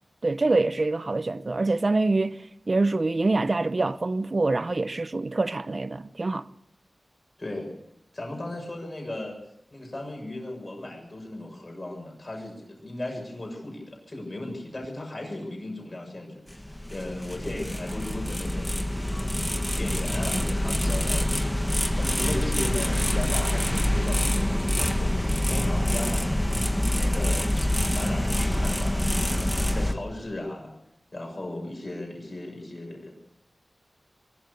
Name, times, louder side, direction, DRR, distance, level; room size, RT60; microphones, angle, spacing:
voice 1, 0.2-2.4 2.7-6.5, right 3 dB, 50° right, 0.9 m, -25 dB
voice 2, 7.4-7.7 8.1-9.4 9.7-18.8 19.8-26.3 27.0-27.5 27.8-30.7 31.1-33.1, left 1 dB, 40° left, 7.0 m, -36 dB
sound 1, 16.5-29.9, left 1 dB, 10° left, 1.8 m, -26 dB
22.5 x 14.0 x 8.3 m
wide cardioid pair, 75°, 0 cm